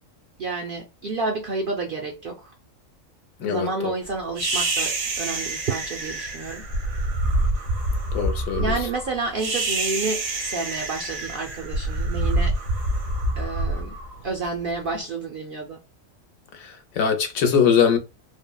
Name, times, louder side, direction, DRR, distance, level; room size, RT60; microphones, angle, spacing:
voice 1, 0.4-2.5 3.5-6.7 8.6-12.6 13.3-13.9 14.2-15.8, right 3 dB, 65° right, 0.5 m, -30 dB
voice 2, 3.4-3.9 8.1-8.7 16.5-18.0, left 7 dB, 85° left, 1.1 m, -22 dB
sound 1, 4.4-14.7, right 2 dB, 80° right, 1.2 m, -26 dB
3.5 x 2.1 x 2.2 m
omnidirectional pair, 1.4 m